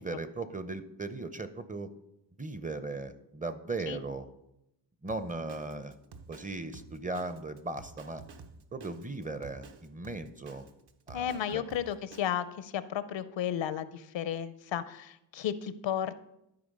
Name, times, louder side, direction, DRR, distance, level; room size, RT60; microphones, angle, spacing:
voice 1, 0.0-1.9 2.4-4.3 5.0-5.9 6.3-8.2 8.7-10.7 11.1-11.6, right 3 dB, 15° right, 11 dB, 0.6 m, -38 dB
Drum kit, 5.1-12.3, right 4 dB, 55° right, 1.0 m, -51 dB
voice 2, 11.1-16.1, left 9 dB, 70° left, 14 dB, 0.7 m, -33 dB
12.5 x 4.4 x 5.3 m, 0.84 s
cardioid pair, 90°, 46 cm